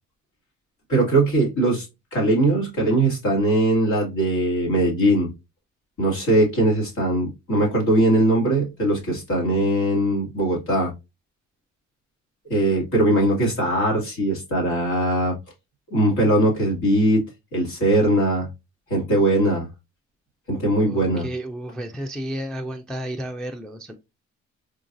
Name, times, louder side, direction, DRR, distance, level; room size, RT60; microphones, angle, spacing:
voice 1, 0.9-1.9 2.1-5.3 6.0-10.9 12.5-15.3 15.9-17.2 17.5-18.5 18.9-19.7 20.5-21.3, right 1 dB, 70° left, 1.9 m, -20 dB
voice 2, 20.8-23.9, right 1 dB, ahead, 0.3 m, -32 dB
3.8 x 2.4 x 2.5 m
cardioid pair, 90°, 30 cm